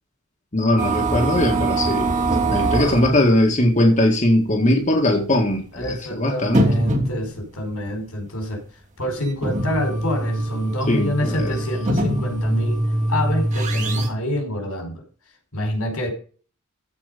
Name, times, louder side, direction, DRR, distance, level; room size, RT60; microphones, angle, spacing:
voice 1, 0.5-6.7 10.9-11.6, left 1 dB, 35° left, 1.9 m, -20 dB
sound 1, 0.8-3.2 4.0-4.1 4.5-4.6 5.6-5.7 6.4-7.5 9.0-14.1, right 1 dB, 35° right, 3.1 m, -23 dB
voice 2, 5.7-8.6 9.0-12.8 13.1-15.0 15.5-16.1, left 1 dB, 90° left, 5.0 m, -27 dB
15.0 x 5.3 x 5.2 m
head